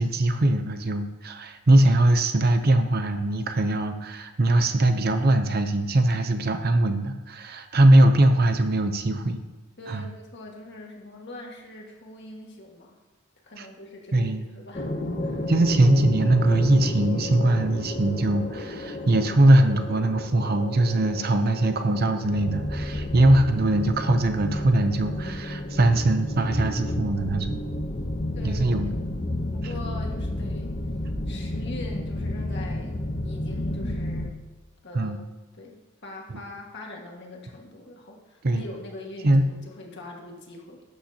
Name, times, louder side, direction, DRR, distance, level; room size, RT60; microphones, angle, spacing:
voice 1, 0.0-9.4 9.9-10.1 13.6-13.7 14.1-14.4 15.5-27.6 28.4-28.9 34.9-35.2 38.4-38.6 39.2-39.4, right 1 dB, 45° right, 8 dB, 0.6 m, -21 dB
voice 2, 9.8-13.0 13.4-14.9 15.2-15.5 28.4-29.0 29.5-30.7 31.3-34.3 34.8-35.1 35.6-40.8, left 2 dB, 50° left, 0 dB, 1.7 m, -42 dB
sound 1, 14.7-34.3, left 1 dB, 35° left, 0.8 m, -31 dB
12.0 x 8.7 x 2.8 m, 1.2 s
head